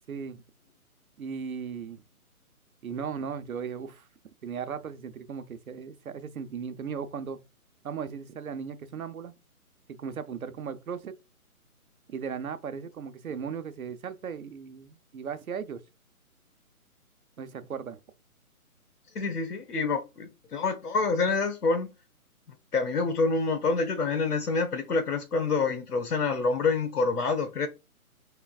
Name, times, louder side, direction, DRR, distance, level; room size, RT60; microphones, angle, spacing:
voice 1, 0.1-0.4 1.2-2.0 2.8-4.1 4.4-7.4 7.8-9.3 10.0-11.1 12.1-15.8 17.4-18.0, right 6 dB, 65° right, 0.8 m, -37 dB
voice 2, 19.1-21.9 22.7-27.7, left 4 dB, 90° left, 1.4 m, -27 dB
5.8 x 3.8 x 2.4 m
hypercardioid pair, 170°, 45 cm